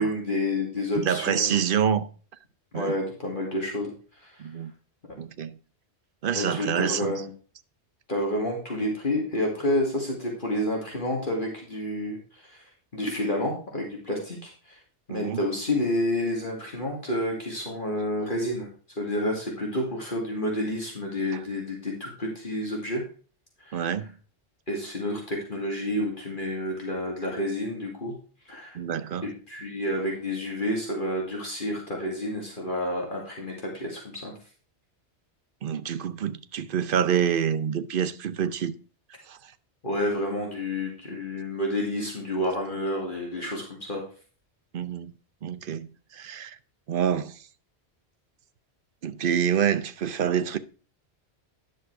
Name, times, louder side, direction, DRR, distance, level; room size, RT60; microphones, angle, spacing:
voice 1, 0.0-1.6 2.7-3.9 4.2-4.3 6.3-7.3 8.1-12.6 12.9-14.8 15.1-18.7 19.0-23.0 23.6-23.9 24.7-28.1 28.5-28.8 29.2-34.3 39.8-44.0, left 1 dB, 50° left, 2.5 m, -29 dB
voice 2, 0.9-2.1 2.7-2.9 4.4-4.7 5.2-5.5 6.2-7.1 15.1-15.4 21.3-21.4 23.7-24.1 28.7-29.3 35.6-38.7 39.3-39.4 44.7-45.1 45.4-45.9 46.1-46.6 46.9-47.4 49.0-50.6, right 8 dB, 55° right, 0.8 m, -27 dB
10.5 x 6.4 x 4.6 m
omnidirectional pair, 1.1 m